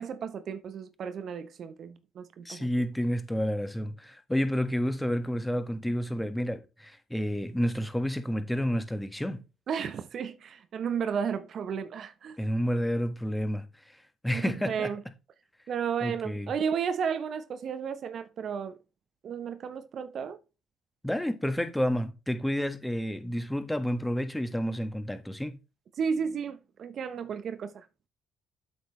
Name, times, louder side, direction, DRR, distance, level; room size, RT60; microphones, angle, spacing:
voice 1, 0.0-2.7 9.7-12.4 14.3-15.0 15.7-18.8 19.2-20.4 26.0-28.1, right 7 dB, 55° right, 0.8 m, -33 dB
voice 2, 2.4-9.4 12.4-14.9 16.0-16.5 21.0-25.6, equal, 5° left, 1.4 m, -30 dB
8.1 x 6.5 x 3.1 m
hypercardioid pair, 55°, 0 cm